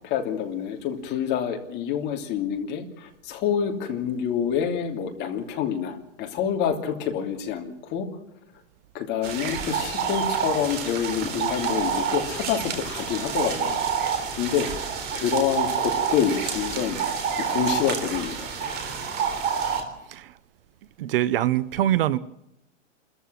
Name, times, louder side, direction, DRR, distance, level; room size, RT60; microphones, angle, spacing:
voice 1, 0.0-8.1 8.9-13.9 14.4-17.0 17.4-18.8, left 8 dB, 30° left, 3.0 m, -27 dB
sound 1, 9.2-19.8, right 7 dB, 25° right, 3.7 m, -28 dB
voice 2, 21.0-22.2, right 13 dB, 50° right, 0.8 m, -23 dB
28.0 x 14.0 x 7.7 m
supercardioid pair, 160°, 37 cm